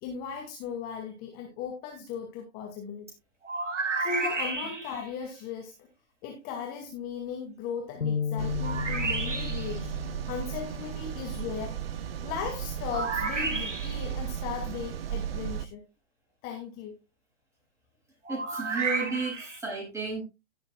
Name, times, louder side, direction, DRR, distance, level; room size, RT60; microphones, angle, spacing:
voice 1, 0.0-3.1 4.0-5.9 6.2-9.9 10.3-11.8 12.2-15.8 16.4-17.0, left 7 dB, 25° left, 2 dB, 2.1 m, -37 dB
sound 1, 3.4-5.1 8.6-9.8 12.9-14.1 18.3-19.6, right 4 dB, 90° right, 2.5 m, -32 dB
sound 2, 8.0-12.3 12.8-13.0 13.8-14.3, left 7 dB, 85° left, 1.3 m, -36 dB
sound 3, 8.4-15.7, right 10 dB, 55° right, 1.0 m, -35 dB
voice 2, 18.3-20.2, right 3 dB, 10° right, -3 dB, 6.9 m, -33 dB
17.0 x 7.8 x 2.3 m, 0.25 s
figure-of-eight pair, 130°, 36 cm